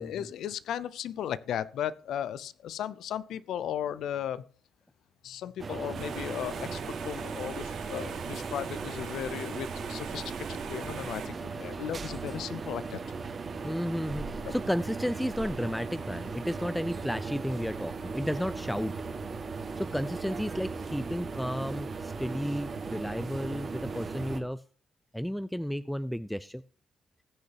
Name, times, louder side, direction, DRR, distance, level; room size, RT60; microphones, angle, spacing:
voice 1, 0.0-4.4 5.2-6.8 7.0-13.0 14.4-14.5, left 10 dB, 75° left, 17 dB, 0.4 m, -36 dB
sound 1, 5.6-24.4, right 4 dB, 40° right, 1.6 m, -37 dB
sound 2, 5.9-11.3, right 7 dB, 75° right, 4.2 m, -41 dB
voice 2, 13.6-19.0 19.8-24.6 25.1-26.6, equal, ahead, 14 dB, 0.4 m, -33 dB
19.5 x 6.6 x 2.9 m, 0.39 s
cardioid pair, 90°, 0 cm